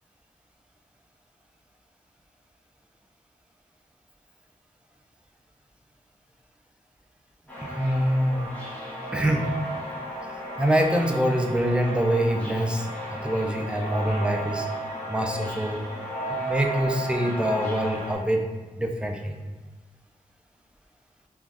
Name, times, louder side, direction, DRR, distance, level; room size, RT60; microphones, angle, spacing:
sound 1, 7.5-18.1, right 1 dB, 10° left, 0.8 m, -34 dB
voice 1, 7.6-8.5 9.1-9.5 10.2-14.7 15.1-15.8 16.5-18.4 18.8-19.4, equal, 5° right, 2 dB, 0.3 m, -25 dB
2.5 x 2.2 x 3.3 m, 1.2 s
wide cardioid pair, 75°, 15 cm